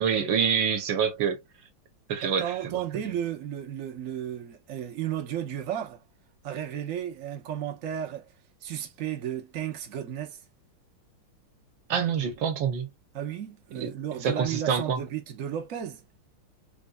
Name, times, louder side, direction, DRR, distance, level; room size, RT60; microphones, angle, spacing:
voice 1, 0.0-1.4 2.1-2.5 11.9-12.9 13.8-13.9 14.2-15.0, right 7 dB, 70° right, 1.6 m, -26 dB
voice 2, 2.2-6.0 6.4-8.3 8.6-10.4 13.1-16.0, right 10 dB, 50° right, 1.1 m, -33 dB
4.4 x 2.6 x 2.3 m
omnidirectional pair, 2.3 m